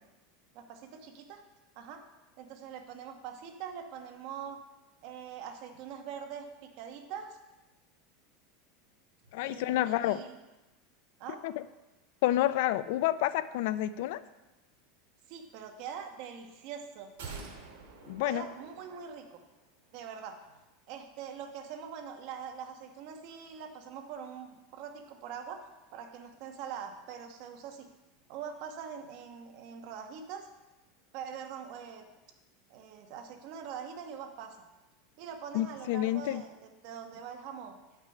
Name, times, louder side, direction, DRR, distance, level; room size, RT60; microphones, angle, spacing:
voice 1, 0.5-1.4 1.7-2.0 2.4-4.6 5.0-7.4 9.4-10.4 11.2-11.4 15.3-17.1 18.2-19.4 19.9-20.4 20.9-25.6 25.9-27.9 28.3-30.5 31.1-32.0 32.7-34.6 35.2-36.6 36.8-37.8, right 7 dB, 45° right, 4 dB, 1.1 m, -43 dB
voice 2, 9.3-10.2 11.4-11.6 12.2-14.2 18.1-18.4 35.5-36.4, left 14 dB, 55° left, 15 dB, 0.3 m, -29 dB
sound 1, 17.2-19.5 19.8-19.9, right 4 dB, 90° right, 2.5 m, -47 dB
9.0 x 6.0 x 5.6 m, 1.0 s
supercardioid pair, 170°, 0 cm